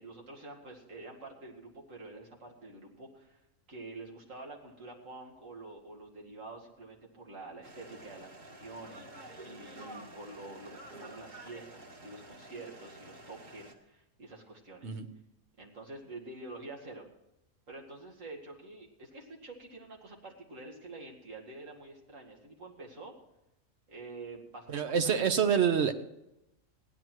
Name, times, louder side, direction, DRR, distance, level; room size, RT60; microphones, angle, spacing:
voice 1, 0.0-3.4 3.7-15.0 15.6-17.1 17.7-23.1 23.9-25.2, right 2 dB, 80° right, -1 dB, 2.6 m, -47 dB
sound 1, 7.6-13.7, right 1 dB, 35° right, 1.7 m, -49 dB
voice 2, 24.7-25.9, right 7 dB, 60° right, 9 dB, 1.2 m, -26 dB
16.0 x 10.5 x 4.6 m, 0.88 s
omnidirectional pair, 1.3 m